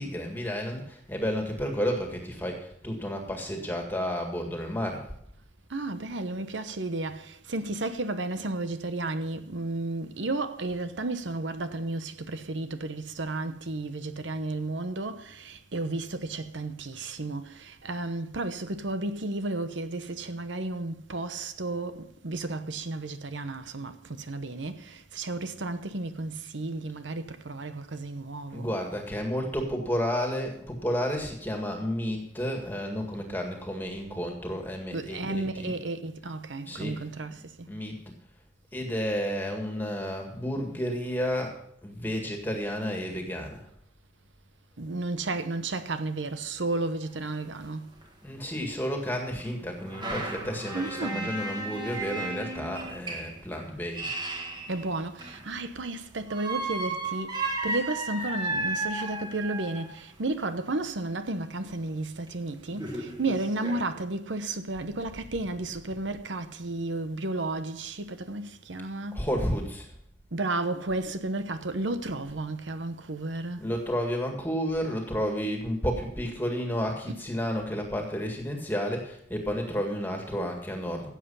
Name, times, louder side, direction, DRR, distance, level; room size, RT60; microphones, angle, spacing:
voice 1, 0.0-5.1 28.5-35.7 36.6-37.0 37.7-38.0 38.7-43.7 48.2-54.1 69.1-69.9 73.6-81.1, equal, 10° left, 1.9 m, -31 dB
voice 2, 5.7-28.8 34.9-37.7 44.8-47.9 50.7-51.3 54.7-69.3 70.3-73.7 77.1-77.2, right 2 dB, 90° right, 1.0 m, -33 dB
sound 1, 47.0-47.1 47.3-47.4 48.0-48.1 49.4-55.6 56.3-60.0 61.7-61.8 62.3-62.4 62.7-63.8, right 2 dB, 25° right, 1.6 m, -34 dB
16.0 x 7.6 x 5.6 m
head